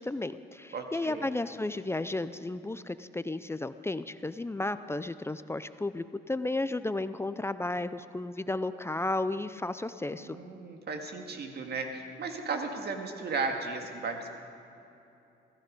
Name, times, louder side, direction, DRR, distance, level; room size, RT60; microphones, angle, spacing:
voice 1, 0.0-10.4, left 2 dB, 15° left, 12 dB, 0.5 m, -33 dB
voice 2, 0.7-1.3 10.1-14.3, right 4 dB, 55° right, 4 dB, 1.9 m, -35 dB
16.0 x 15.0 x 5.3 m, 2.9 s
cardioid pair, 90°, 20 cm